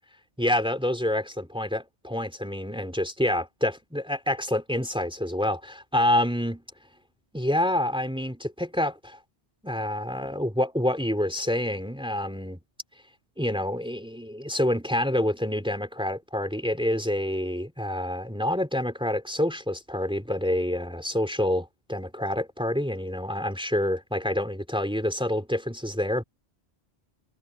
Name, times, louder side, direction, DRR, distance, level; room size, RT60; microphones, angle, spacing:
voice 1, 0.4-6.6 7.3-9.2 9.6-12.6 13.4-26.2, left 1 dB, 5° right, 3.3 m, -27 dB
omnidirectional pair, 1.1 m